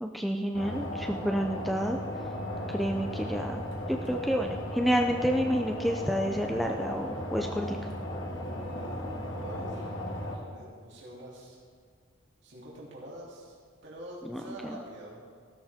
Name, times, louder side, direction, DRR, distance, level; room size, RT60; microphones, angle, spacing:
voice 1, 0.0-2.0 2.7-3.6 3.9-7.9 14.2-14.8, equal, ahead, 2 dB, 0.5 m, -29 dB
sound 1, 0.5-10.4, left 1 dB, 60° left, 2.1 m, -36 dB
voice 2, 8.4-9.9 10.3-11.6 12.4-13.6 13.8-15.2, right 1 dB, 55° right, -5 dB, 3.0 m, -45 dB
16.0 x 13.0 x 3.5 m, 2.1 s
head